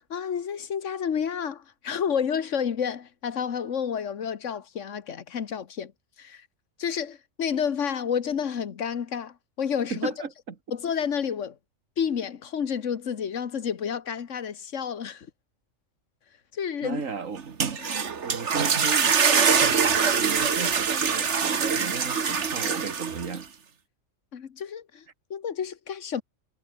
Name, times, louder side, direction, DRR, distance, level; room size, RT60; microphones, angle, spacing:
voice 1, 0.0-5.9 6.2-6.5 6.8-10.1 10.7-11.6 12.0-15.3 16.5-17.0 17.8-18.0 24.3-25.0 25.3-26.2, left 7 dB, 70° left, 1.5 m, -30 dB
voice 2, 9.9-10.3 16.8-17.4 18.2-19.2 19.5-23.5, right 5 dB, 85° right, 2.3 m, -35 dB
sound 1, 17.4-23.4, right 6 dB, 60° right, 1.7 m, -24 dB
omnidirectional pair, 1.3 m